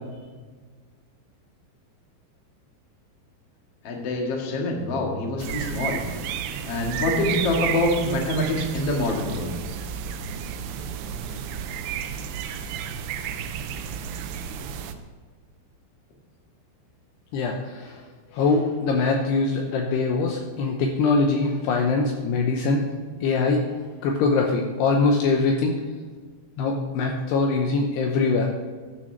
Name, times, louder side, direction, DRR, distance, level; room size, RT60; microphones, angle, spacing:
voice 1, 3.8-6.0 6.6-9.5, left 1 dB, 55° left, 0 dB, 1.6 m, -25 dB
sound 1, 5.4-14.9, right 8 dB, 85° right, 2.4 m, -32 dB
voice 2, 17.3-18.0 18.3-22.9 23.2-23.7 24.0-25.8 26.6-28.5, left 3 dB, 75° left, 2 dB, 2.5 m, -23 dB
11.0 x 6.1 x 6.5 m, 1.5 s
omnidirectional pair, 5.5 m